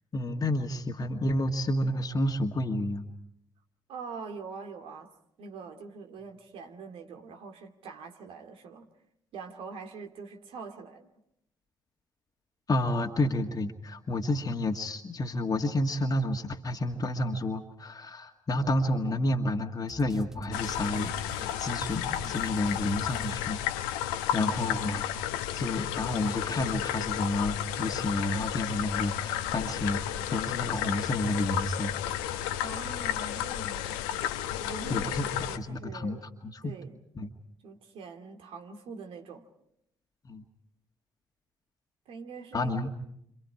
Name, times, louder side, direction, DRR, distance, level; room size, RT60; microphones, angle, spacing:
voice 1, 0.1-3.1 12.7-24.0 24.3-25.1 25.5-31.9 34.9-36.2 36.4-36.7 37.2-37.3 40.2-40.4 42.5-42.9, left 1 dB, 35° left, 2 dB, 1.8 m, -30 dB
voice 2, 3.9-5.1 5.4-8.9 9.3-11.1 24.4-24.6 32.6-34.0 34.6-36.3 36.6-37.0 37.6-39.5 42.1-42.7, right 4 dB, 60° right, 5 dB, 2.5 m, -43 dB
sound 1, 19.9-24.2, right 2 dB, 5° right, 1.3 m, -49 dB
sound 2, 20.5-35.6, left 11 dB, 75° left, 1.0 m, -32 dB
30.0 x 27.5 x 4.8 m, 0.73 s
figure-of-eight pair, 45°, 10 cm